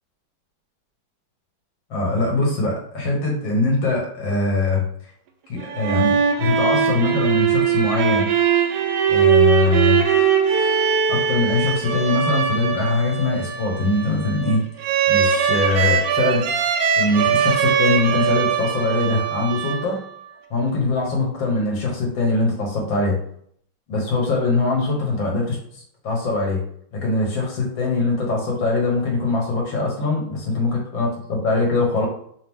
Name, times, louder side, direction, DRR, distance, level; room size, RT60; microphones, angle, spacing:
voice 1, 1.9-4.8 5.5-8.3 9.1-10.0 11.1-16.5 17.0-20.0 20.5-23.2 23.9-26.6 26.9-32.1, left 2 dB, 70° left, -1 dB, 2.0 m, -22 dB
sound 1, 5.6-20.2, right 7 dB, 75° right, 0.9 m, -21 dB
3.9 x 3.0 x 3.5 m, 0.64 s
omnidirectional pair, 2.2 m